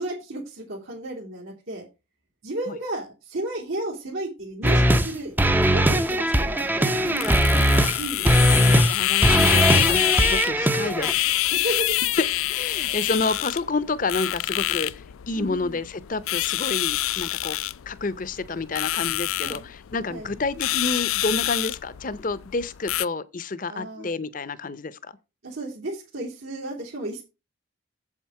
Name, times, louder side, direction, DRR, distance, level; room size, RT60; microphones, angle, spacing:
voice 1, 0.0-1.8 2.4-5.3 5.7-7.3 8.0-8.8 11.5-12.0 12.7-13.1 15.3-15.8 19.4-19.6 20.1-20.4 23.7-24.1 25.4-27.2, right 1 dB, 85° right, 3.0 m, -33 dB
sound 1, 4.6-5.1 5.4-8.0 8.3-8.9 9.2-11.1, right 1 dB, 10° right, 0.4 m, -20 dB
sound 2, 6.0-23.1, left 15 dB, 90° left, 0.4 m, -27 dB
voice 2, 8.6-11.2 12.2-14.9 15.3-17.6 17.9-25.0, left 3 dB, 40° left, 0.6 m, -29 dB
7.8 x 7.3 x 4.7 m
head